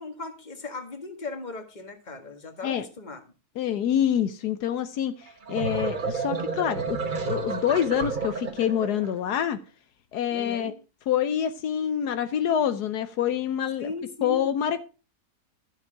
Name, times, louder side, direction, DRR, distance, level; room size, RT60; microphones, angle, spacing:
voice 1, 0.0-3.2 10.3-10.7 13.8-14.4, left 3 dB, 30° left, 1.7 m, -37 dB
voice 2, 3.6-5.1 5.5-9.6 10.1-10.7 11.1-13.9 14.2-14.8, left 9 dB, 80° left, 1.3 m, -26 dB
sound 1, 5.3-9.1, right 4 dB, 35° right, 1.1 m, -31 dB
12.5 x 7.2 x 4.9 m
omnidirectional pair, 1.7 m